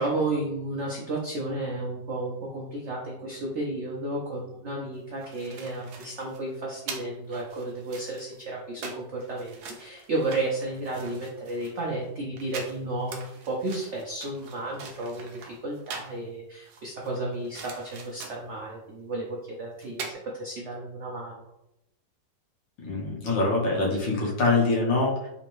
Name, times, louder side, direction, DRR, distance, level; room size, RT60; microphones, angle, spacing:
voice 1, 0.0-21.3, right 2 dB, 90° right, -2 dB, 0.6 m, -33 dB
sound 1, 4.9-16.2 16.6-18.5 19.5-19.6 19.8-20.1, right 5 dB, 70° right, 1.1 m, -43 dB
voice 2, 22.8-25.3, left 3 dB, 85° left, -3 dB, 1.7 m, -24 dB
3.9 x 2.6 x 3.0 m, 0.86 s
omnidirectional pair, 2.0 m